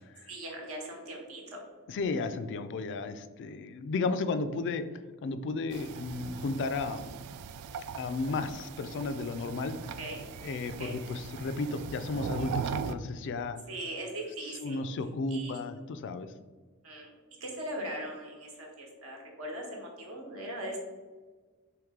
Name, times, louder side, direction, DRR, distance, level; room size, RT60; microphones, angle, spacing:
voice 1, 0.3-1.6 10.0-10.2 10.8-11.0 13.7-14.8 15.3-15.6 16.8-17.1 17.4-20.8, right 1 dB, 70° right, 0 dB, 1.2 m, -40 dB
voice 2, 1.9-4.8 5.2-7.2 7.9-9.7 10.4-13.6 14.6-16.3, left 3 dB, 55° left, 10 dB, 0.3 m, -33 dB
sound 1, 5.7-12.9, right 6 dB, 85° right, 0.3 m, -39 dB
4.7 x 3.1 x 3.6 m, 1.4 s
head